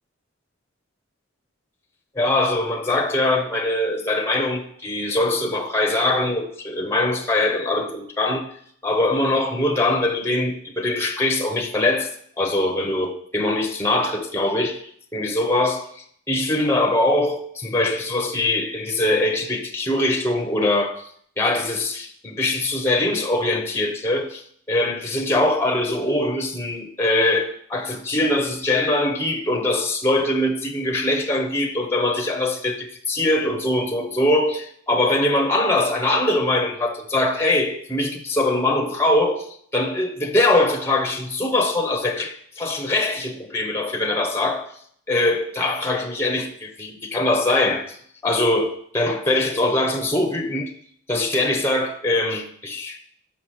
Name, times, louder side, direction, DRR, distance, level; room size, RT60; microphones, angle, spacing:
voice 1, 2.1-8.5 8.8-12.1 12.4-14.8 15.1-21.0 21.4-24.4 24.7-39.5 39.7-44.7 45.1-48.0 48.2-50.7 51.1-53.0, left 2 dB, 15° left, 3 dB, 0.8 m, -22 dB
5.9 x 5.8 x 6.3 m, 0.63 s
head